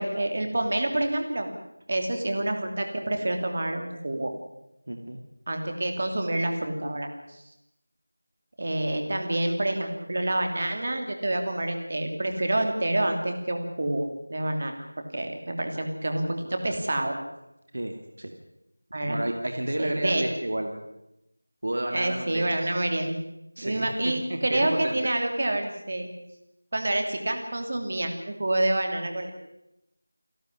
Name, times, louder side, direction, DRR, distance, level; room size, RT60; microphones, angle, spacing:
voice 1, 0.0-1.5 1.9-4.3 5.5-7.4 8.6-14.7 15.1-17.1 18.9-19.2 19.8-20.2 21.9-23.1 23.6-26.1 26.7-29.3, right 1 dB, 30° right, 5 dB, 2.9 m, -27 dB
voice 2, 4.9-5.2 17.7-17.9 18.2-18.3 19.0-20.8 21.6-22.4 23.6-25.0, right 1 dB, 50° right, 4 dB, 2.4 m, -31 dB
28.5 x 12.0 x 9.8 m, 0.88 s
figure-of-eight pair, 180°, 0 cm